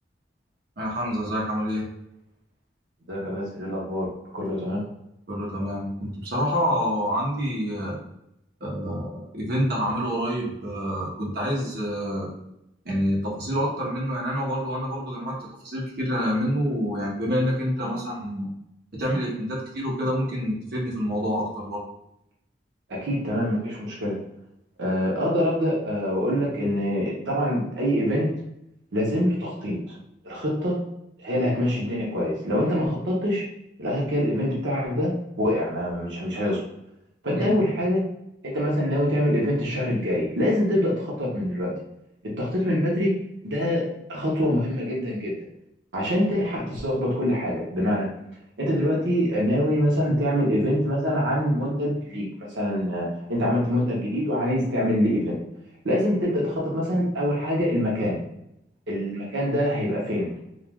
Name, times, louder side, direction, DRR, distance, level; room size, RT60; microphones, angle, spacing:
voice 1, 0.8-1.9 5.3-8.0 8.6-12.3 12.8-15.4 15.6-18.5 19.0-21.8 37.3-37.5, equal, 60° right, -4 dB, 0.9 m, -27 dB
voice 2, 3.1-4.1 4.3-4.8 17.8-17.9 19.1-19.2 22.9-24.2 24.8-28.3 28.9-29.8 30.2-30.8 31.2-33.4 33.8-36.6 37.2-38.0 38.4-41.7 42.4-43.1 43.4-45.4 45.9-48.1 48.6-55.4 55.8-58.2 58.9-60.3, equal, 85° right, -4 dB, 0.7 m, -25 dB
3.2 x 2.3 x 2.2 m, 0.82 s
head